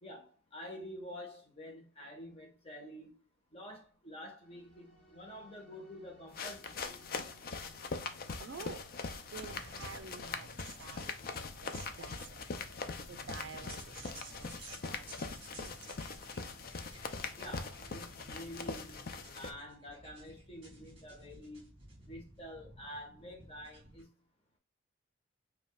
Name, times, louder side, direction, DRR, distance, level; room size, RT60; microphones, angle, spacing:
voice 1, 0.0-3.2 3.5-7.1 17.4-19.0 19.3-21.7 22.0-24.1, equal, 30° left, 1.3 m, -48 dB
sound 1, 4.4-19.6, left 1 dB, 5° left, 1.6 m, -62 dB
sound 2, 6.3-19.5, left 4 dB, 45° left, 0.4 m, -42 dB
voice 2, 8.4-11.1 11.6-12.4 13.0-15.7, right 5 dB, 60° right, 0.4 m, -49 dB
sound 3, 9.3-24.0, right 1 dB, 25° right, 1.9 m, -56 dB
5.1 x 2.7 x 2.3 m
head